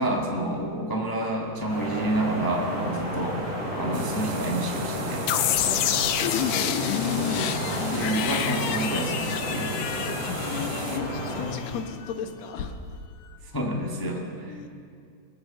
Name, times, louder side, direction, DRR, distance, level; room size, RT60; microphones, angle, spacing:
voice 1, 0.0-3.4 3.8-5.2 7.3-7.5 7.9-9.8 13.5-14.6, right 1 dB, 30° left, -1 dB, 0.3 m, -29 dB
sound 1, 1.7-11.5, equal, 45° right, 5.9 m, -31 dB
sound 2, 3.9-11.0, right 9 dB, 75° right, 2.1 m, -41 dB
sound 3, 5.3-12.1, left 11 dB, 85° left, 2.0 m, -28 dB
voice 2, 5.5-6.1 10.4-13.0 14.5-14.7, left 6 dB, 65° left, 5 dB, 2.2 m, -36 dB
22.0 x 8.9 x 6.6 m, 2.3 s
omnidirectional pair, 3.4 m